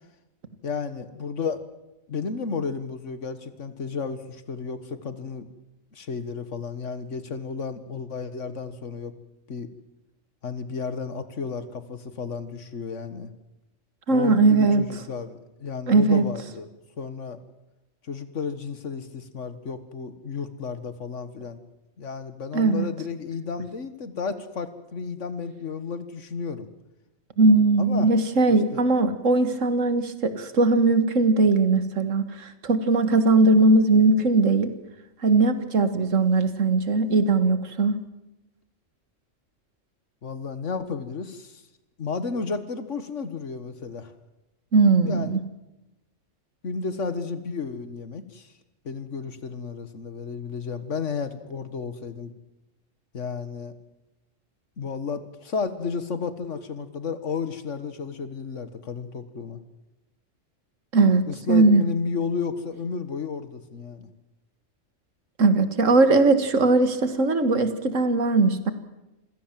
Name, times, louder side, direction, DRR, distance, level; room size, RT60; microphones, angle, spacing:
voice 1, 0.6-1.7 2.1-5.5 5.9-9.1 9.5-9.7 10.4-13.3 14.1-16.7 17.0-17.4 18.0-21.6 22.0-26.7 27.8-28.1 28.5-28.9 40.2-41.6 42.0-44.1 45.0-45.4 46.6-48.5 48.8-52.3 53.1-53.7 54.8-59.6 61.3-64.1, left 5 dB, 70° left, 12 dB, 1.9 m, -32 dB
voice 2, 14.1-14.8 15.9-16.2 22.5-22.9 27.4-34.7 35.2-38.0 44.7-45.4 60.9-61.2 61.5-61.8 65.4-68.7, right 3 dB, 80° right, 11 dB, 2.1 m, -19 dB
27.0 x 16.5 x 7.6 m, 0.98 s
omnidirectional pair, 1.3 m